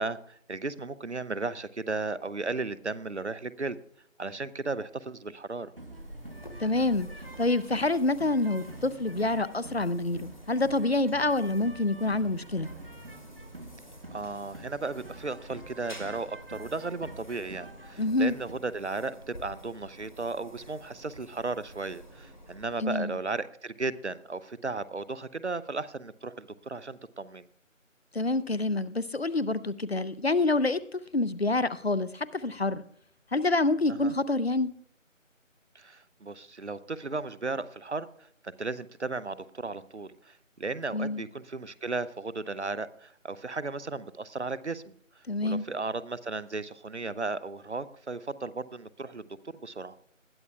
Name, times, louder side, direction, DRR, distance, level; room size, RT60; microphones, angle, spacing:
voice 1, 0.0-3.8 4.2-5.7 14.1-27.5 33.9-34.1 35.7-38.1 38.4-44.8 45.4-49.3 49.6-49.9, right 3 dB, 60° right, 17 dB, 0.7 m, -35 dB
sound 1, 5.8-18.5, right 2 dB, 45° right, 1.1 m, -47 dB
sound 2, 5.9-23.3, equal, 35° left, 1.1 m, -50 dB
voice 2, 6.6-7.1 7.4-12.7 18.0-18.3 22.8-23.1 28.1-32.8 33.3-34.7 40.9-41.2 45.3-45.6, left 2 dB, 50° left, 17 dB, 0.6 m, -27 dB
19.5 x 12.0 x 2.3 m, 0.64 s
figure-of-eight pair, 175°, 39 cm